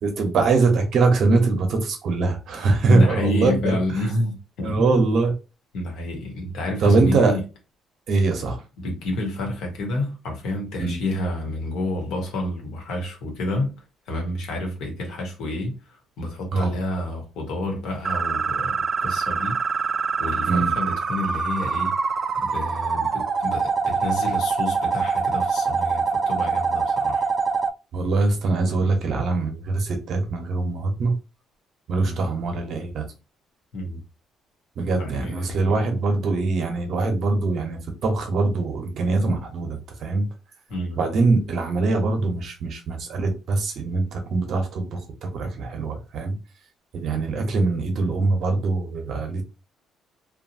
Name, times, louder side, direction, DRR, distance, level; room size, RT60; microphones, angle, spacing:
voice 1, 0.0-3.7 4.6-5.3 6.8-7.3 8.1-8.6 10.8-11.0 16.5-16.7 20.5-20.7 27.9-31.1 31.9-33.0 34.8-40.2 41.0-46.3 46.9-49.4, right 3 dB, 50° right, 0.8 m, -22 dB
voice 2, 2.8-5.0 5.7-7.4 8.8-13.7 14.1-19.6 20.2-21.9 22.4-27.3 32.0-32.3 33.7-34.0 34.9-35.7 40.7-41.0, left 1 dB, 75° left, 1.2 m, -29 dB
sound 1, 18.0-27.7, right 5 dB, 30° right, 0.3 m, -24 dB
2.9 x 2.3 x 2.7 m
cardioid pair, 155°, 0 cm